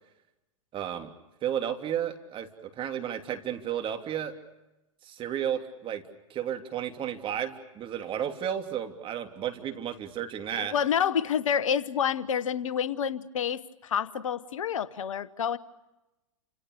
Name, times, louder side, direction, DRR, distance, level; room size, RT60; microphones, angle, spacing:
voice 1, 0.7-1.1 1.4-4.3 5.0-6.0 6.3-10.7, right 9 dB, 30° right, 5 dB, 3.1 m, -33 dB
voice 2, 10.6-15.6, left 8 dB, 75° left, 17 dB, 1.2 m, -28 dB
29.5 x 27.0 x 6.8 m, 0.99 s
hypercardioid pair, 105°, 17 cm